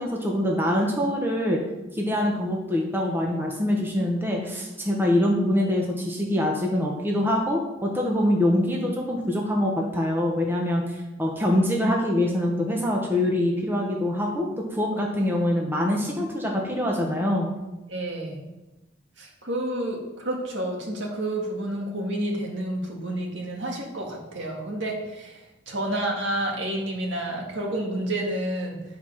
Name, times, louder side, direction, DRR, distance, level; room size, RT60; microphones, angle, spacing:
voice 1, 0.0-1.6 1.9-17.5, left 1 dB, 10° right, -1 dB, 1.1 m, -24 dB
voice 2, 17.9-18.5 19.2-28.8, right 1 dB, 65° right, 0 dB, 1.9 m, -30 dB
10.0 x 4.9 x 5.7 m, 1.0 s
head